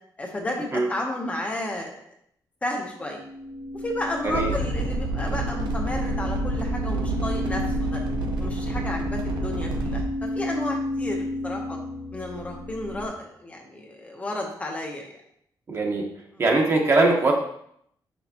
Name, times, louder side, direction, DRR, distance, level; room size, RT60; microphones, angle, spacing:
voice 1, 0.2-2.0 2.6-3.2 3.7-8.0 8.4-11.2 11.4-11.8 12.1-15.1 16.3-16.4, left 1 dB, 20° left, 0 dB, 0.8 m, -32 dB
sound 1, 2.9-13.1, left 1 dB, 55° right, 1.2 m, -32 dB
voice 2, 4.2-4.5 15.7-16.1 16.4-17.3, right 3 dB, 35° right, 0 dB, 1.1 m, -21 dB
sound 2, 4.3-10.0, right 1 dB, 90° right, 0.8 m, -29 dB
6.4 x 6.1 x 2.8 m, 0.70 s
wide cardioid pair, 175°, 7 cm